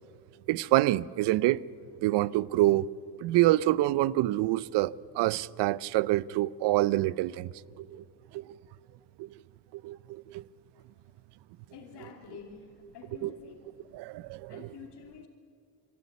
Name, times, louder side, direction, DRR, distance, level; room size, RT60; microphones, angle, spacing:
voice 1, 0.5-1.6 2.0-2.9 3.2-7.5 7.8-8.0 8.3-8.6 9.2-9.3 9.7-10.4 13.2-13.3 13.9-14.7, right 16 dB, 75° right, 0.6 m, -26 dB
voice 2, 11.7-13.5 14.5-15.3, left 6 dB, 70° left, 2.9 m, -48 dB
25.0 x 13.0 x 9.4 m
supercardioid pair, 70°, 41 cm